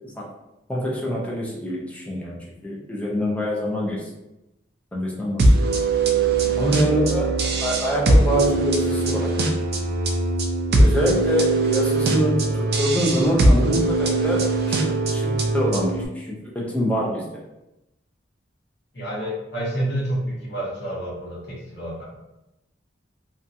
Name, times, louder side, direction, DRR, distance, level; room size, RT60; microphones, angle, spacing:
voice 1, 0.7-4.1 4.9-5.7 6.6-7.3 7.6-9.4 10.7-17.3, equal, 5° left, -3 dB, 0.4 m, -25 dB
sound 1, 5.4-16.1, right 2 dB, 55° right, 0.3 m, -21 dB
voice 2, 18.9-22.0, right 1 dB, 60° left, -6 dB, 1.0 m, -29 dB
2.7 x 2.2 x 2.5 m, 0.93 s
head